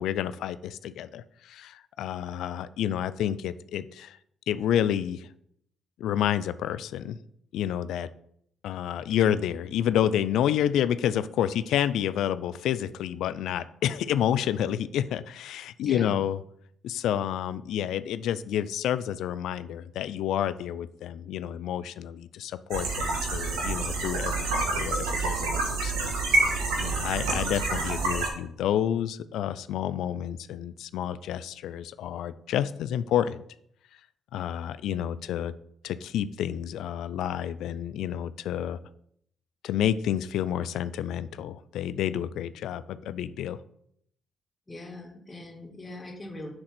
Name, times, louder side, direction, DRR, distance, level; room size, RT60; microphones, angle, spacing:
voice 1, 0.0-4.2 4.5-5.3 6.0-7.2 7.5-8.1 8.6-16.4 16.8-26.1 26.8-33.4 34.3-35.5 35.8-38.8 39.6-43.6, left 10 dB, 70° left, 15 dB, 0.3 m, -29 dB
voice 2, 15.8-16.2 44.7-46.5, left 1 dB, 25° left, -1 dB, 2.3 m, -40 dB
sound 1, 22.7-28.3, right 3 dB, 80° right, 1.4 m, -27 dB
6.1 x 3.8 x 6.0 m, 0.68 s
hypercardioid pair, 55°, 0 cm